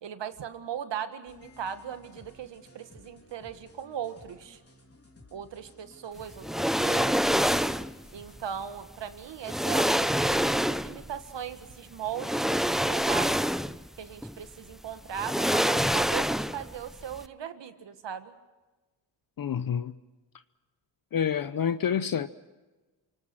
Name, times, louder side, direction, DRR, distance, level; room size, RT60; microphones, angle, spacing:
voice 1, 0.0-4.6 5.3-7.5 8.1-13.4 14.0-18.3, right 9 dB, 75° right, 1.8 m, -38 dB
sound 1, 1.3-8.4, left 2 dB, 30° left, 3.5 m, -55 dB
sound 2, 6.4-7.9 9.0-9.1 9.5-11.1 12.1-13.9 14.2-14.3 15.1-16.8 17.0-17.2, equal, ahead, 0.6 m, -26 dB
voice 2, 19.4-19.9 21.1-22.3, left 8 dB, 50° left, 0.8 m, -28 dB
28.0 x 19.0 x 6.2 m
cardioid pair, 65°, 44 cm